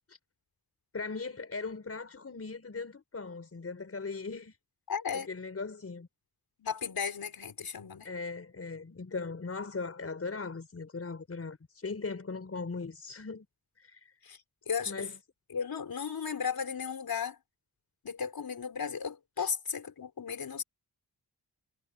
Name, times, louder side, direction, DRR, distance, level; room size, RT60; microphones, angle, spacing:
voice 1, 0.9-4.6 5.1-6.1 8.0-13.5 13.8-14.1 14.9-15.2 19.4-19.5, left 4 dB, 35° left, 5.7 m, -39 dB
voice 2, 4.9-5.3 6.6-8.1 14.2-14.4 14.7-15.1 15.5-17.4 18.0-20.6, left 6 dB, 65° left, 4.6 m, -35 dB
wide cardioid pair, 175°, 39 cm